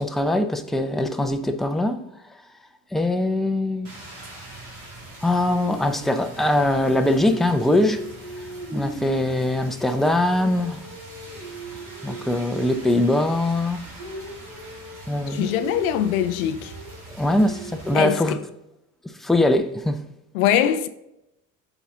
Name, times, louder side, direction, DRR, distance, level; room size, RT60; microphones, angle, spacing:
voice 1, 0.0-2.0 2.9-3.9 5.2-8.0 8.7-10.8 12.0-13.8 15.1-15.5 17.2-18.4 19.2-20.0, left 1 dB, ahead, 0.6 m, -22 dB
Rain, 3.8-17.9, right 2 dB, 75° right, 2.4 m, -39 dB
voice 2, 15.3-16.7 17.9-18.4 20.3-20.9, left 10 dB, 75° left, 0.6 m, -22 dB
8.3 x 4.1 x 3.7 m
hypercardioid pair, 55°, 42 cm